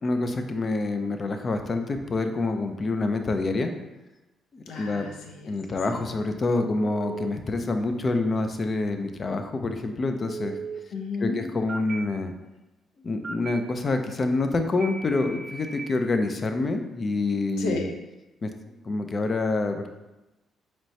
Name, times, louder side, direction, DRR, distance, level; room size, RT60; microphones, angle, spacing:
voice 1, 0.0-3.7 4.5-5.1 5.4-10.6 11.2-12.3 13.0-17.9 18.4-19.9, left 3 dB, 40° left, 6 dB, 0.4 m, -27 dB
voice 2, 4.7-5.5 10.9-11.4 17.6-17.9, left 3 dB, 85° left, 1 dB, 0.6 m, -32 dB
Telephone, 6.8-7.3 10.3-10.8 11.7-12.0 13.2-13.5 14.8-15.8, right 4 dB, 35° right, 0.3 m, -36 dB
4.4 x 3.1 x 2.7 m, 1.0 s
cardioid pair, 90°, 0 cm